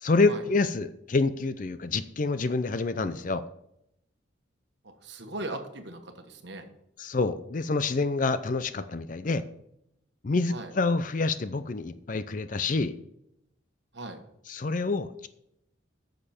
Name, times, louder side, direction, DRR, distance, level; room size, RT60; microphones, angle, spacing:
voice 1, 0.0-3.4 7.0-9.4 10.2-12.9 14.5-15.3, left 3 dB, 45° left, 12 dB, 0.5 m, -27 dB
voice 2, 4.8-6.6 10.5-10.7 13.9-14.2, right 2 dB, 65° right, 5 dB, 1.3 m, -38 dB
10.0 x 6.6 x 4.3 m, 0.77 s
head